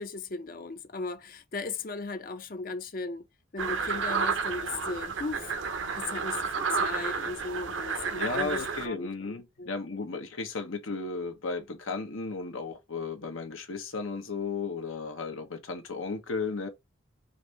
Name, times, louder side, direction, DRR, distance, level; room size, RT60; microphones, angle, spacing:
voice 1, 0.0-3.3 3.5-5.5 5.9-9.7, left 3 dB, 45° left, 0.5 m, -37 dB
sound 1, 3.6-8.9, right 5 dB, 70° right, 0.7 m, -31 dB
voice 2, 8.2-16.7, left 4 dB, 85° left, 1.1 m, -34 dB
5.1 x 2.7 x 3.2 m
head